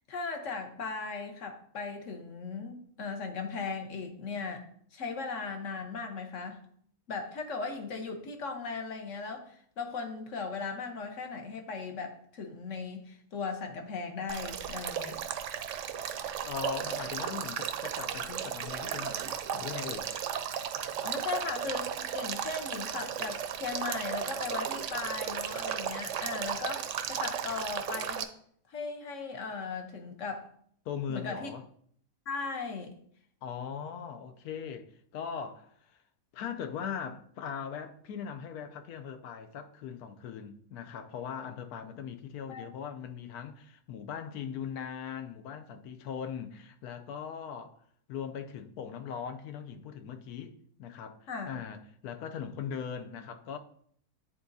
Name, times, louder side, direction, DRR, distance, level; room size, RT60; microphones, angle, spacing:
voice 1, 0.1-6.6 7.1-15.2 21.0-28.3 28.7-30.5 31.1-31.5 32.3-33.0 42.5-42.7 51.3-51.6, left 4 dB, 60° left, 1.2 m, -37 dB
Male speech man speaking / Stream / Trickle dribble, 14.3-28.2, right 9 dB, 70° right, 0.8 m, -35 dB
voice 2, 16.5-20.1 30.8-31.7 33.4-36.0 36.3-47.8 48.1-53.6, left 7 dB, 85° left, 1.2 m, -40 dB
9.8 x 3.8 x 2.7 m
omnidirectional pair, 1.6 m